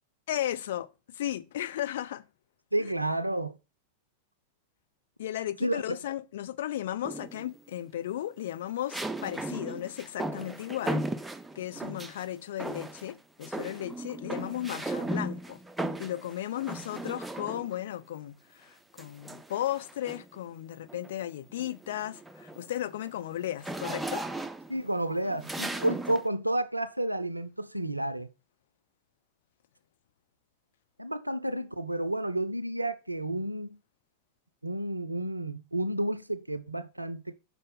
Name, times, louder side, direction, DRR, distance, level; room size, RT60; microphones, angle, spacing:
voice 1, 0.3-2.3 5.2-11.1 11.5-15.6 16.0-24.2, left 12 dB, 55° left, 0.5 m, -35 dB
voice 2, 2.7-3.6 5.6-5.8 24.7-28.3 31.0-33.8 34.6-37.3, right 1 dB, 85° right, 0.4 m, -31 dB
sound 1, 7.0-7.6 8.9-12.2 12.6-13.1 13.4-17.8 19.0-20.4 20.9-21.1 21.5-26.3, right 2 dB, 5° right, 0.5 m, -37 dB
5.4 x 4.2 x 5.4 m
figure-of-eight pair, 90°, 0 cm